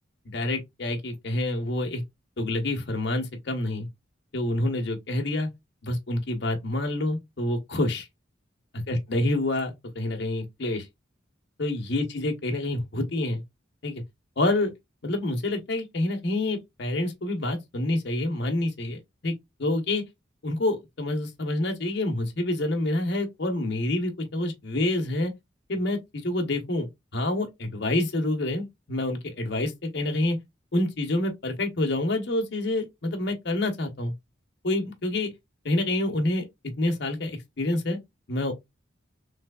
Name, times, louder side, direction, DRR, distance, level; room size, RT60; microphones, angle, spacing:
voice 1, 0.3-2.0 2.4-3.9 4.3-5.5 5.8-8.1 8.9-10.9 11.6-13.4 13.8-14.0 14.4-14.7 15.0-19.0 19.2-19.3 19.6-20.0 20.4-25.3 25.7-26.9 27.1-30.4 30.7-34.1 34.6-35.3 35.6-36.5 36.8-38.0 38.3-38.5, left 2 dB, 60° left, 0.9 m, -27 dB
3.3 x 3.1 x 2.2 m
head